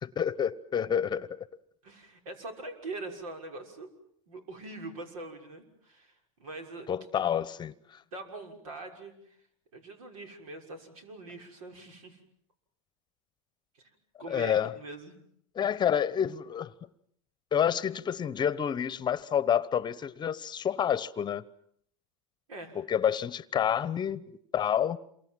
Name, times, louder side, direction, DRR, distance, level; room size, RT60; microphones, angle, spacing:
voice 1, 0.0-1.5 6.9-8.0 14.3-14.7 15.6-16.7 17.5-21.4 22.7-25.0, left 9 dB, 25° left, 1.0 m, -29 dB
voice 2, 1.8-3.9 4.3-7.2 8.1-9.4 9.7-12.2 13.7-13.9 14.2-15.2 22.5-22.8, right 2 dB, 80° right, 6.3 m, -43 dB
28.0 x 24.0 x 7.7 m
supercardioid pair, 115°, 17 cm